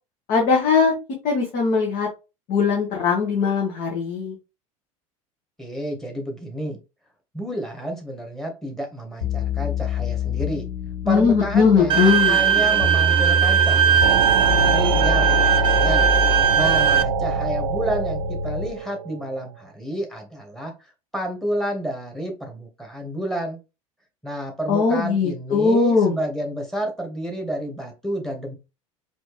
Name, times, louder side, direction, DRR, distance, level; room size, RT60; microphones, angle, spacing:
voice 1, 0.3-0.9 1.2-2.1 2.5-4.3 11.0-12.4 24.7-26.2, left 5 dB, 50° left, -1 dB, 1.4 m, -19 dB
voice 2, 5.6-6.8 7.3-10.7 11.1-16.1 16.6-23.6 24.2-28.5, right 1 dB, ahead, 3 dB, 1.6 m, -30 dB
sound 1, 9.2-18.8, left 4 dB, 70° left, 0.9 m, -27 dB
Bowed string instrument, 11.9-17.0, right 8 dB, 30° right, 0.6 m, -19 dB
sound 2, 14.0-19.4, right 10 dB, 80° right, 0.4 m, -25 dB
4.2 x 3.0 x 3.1 m, 0.28 s
hypercardioid pair, 80°, 18 cm